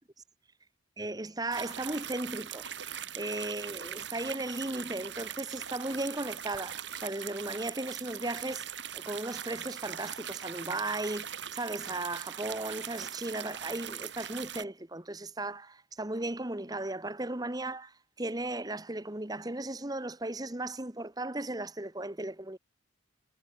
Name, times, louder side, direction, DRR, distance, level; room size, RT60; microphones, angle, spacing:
voice 1, 1.0-8.7 8.9-22.6, right 2 dB, 20° right, 1.2 m, -36 dB
sound 1, 1.5-14.6, right 9 dB, 65° right, 3.1 m, -41 dB
head